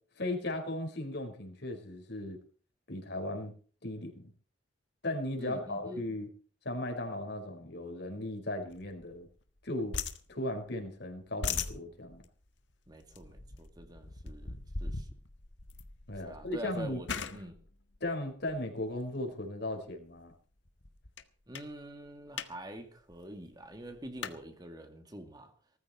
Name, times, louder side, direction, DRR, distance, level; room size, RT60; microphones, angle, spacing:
voice 1, 0.2-2.4 2.9-3.5 3.8-4.3 5.0-6.3 6.6-9.3 9.6-10.0 10.3-12.2 16.1-17.0 18.0-20.3, left 1 dB, 65° left, 4.9 m, -36 dB
voice 2, 5.4-6.0 12.9-15.1 16.2-17.6 21.5-25.5, right 1 dB, 20° right, 2.3 m, -46 dB
sound 1, 8.7-9.6 9.9-10.9 11.2-19.0 19.6-19.9 20.3-20.4 20.6-21.2 21.5-21.7 22.0-22.5 22.8-22.9 23.1-24.4, left 5 dB, 80° left, 1.6 m, -40 dB
19.5 x 14.5 x 4.4 m
head